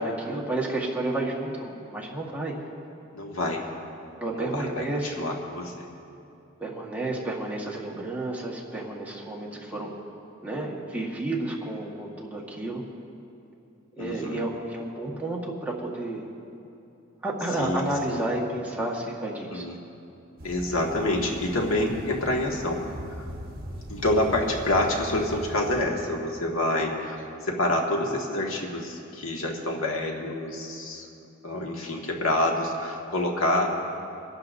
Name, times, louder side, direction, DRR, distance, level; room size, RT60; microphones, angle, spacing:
voice 1, 0.0-2.5 4.2-5.3 6.6-9.9 10.4-12.8 14.0-16.3 17.2-19.7, right 2 dB, 10° right, -3 dB, 1.4 m, -31 dB
voice 2, 3.1-3.7 4.3-5.9 9.5-9.9 14.0-14.4 17.6-18.2 19.5-19.7 20.4-22.8 23.2-23.3 23.9-31.1 31.4-33.7, left 1 dB, 80° left, 0 dB, 1.7 m, -27 dB
sound 1, 20.4-25.8, equal, 45° right, 1.5 m, -40 dB
26.5 x 11.5 x 2.6 m, 2.7 s
head